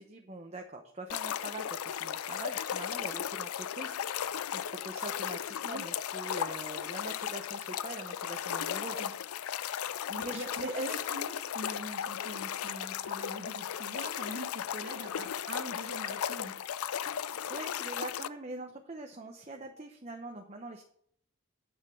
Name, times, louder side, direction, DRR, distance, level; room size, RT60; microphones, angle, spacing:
voice 1, 0.0-9.0 10.2-11.0 17.5-20.8, right 2 dB, 30° right, 2 dB, 0.9 m, -43 dB
sound 1, 1.1-18.3, left 9 dB, 85° left, 0.4 m, -36 dB
voice 2, 10.1-16.6, right 1 dB, 50° right, 3 dB, 1.8 m, -43 dB
8.9 x 6.7 x 6.9 m, 0.65 s
head